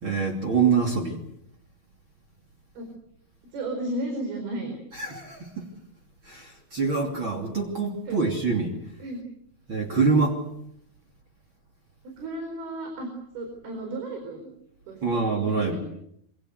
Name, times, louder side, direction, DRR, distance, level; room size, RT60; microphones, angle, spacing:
voice 1, 0.0-1.2 5.0-5.7 6.3-8.7 9.7-10.4 15.0-15.8, right 4 dB, 35° right, 2 dB, 3.4 m, -25 dB
voice 2, 3.5-4.8 8.1-8.3 9.0-9.2 12.2-14.5 14.9-15.8, right 1 dB, 75° right, 4 dB, 6.5 m, -34 dB
26.5 x 24.5 x 8.0 m, 0.74 s
omnidirectional pair, 4.4 m